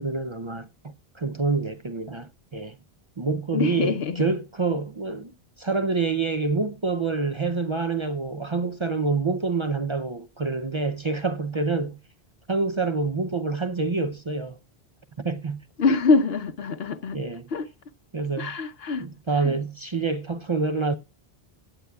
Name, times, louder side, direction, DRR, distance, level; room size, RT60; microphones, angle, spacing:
voice 1, 0.0-2.8 3.2-5.3 5.6-12.0 12.5-14.6 15.2-15.6 17.1-17.5 18.1-18.6 19.0-20.9, right 4 dB, 35° right, 0.6 m, -27 dB
voice 2, 3.5-4.3 15.8-17.2 17.5-17.7 18.4-19.1 19.4-19.6, left 4 dB, 75° left, 1.1 m, -24 dB
16.5 x 9.3 x 2.3 m
omnidirectional pair, 1.0 m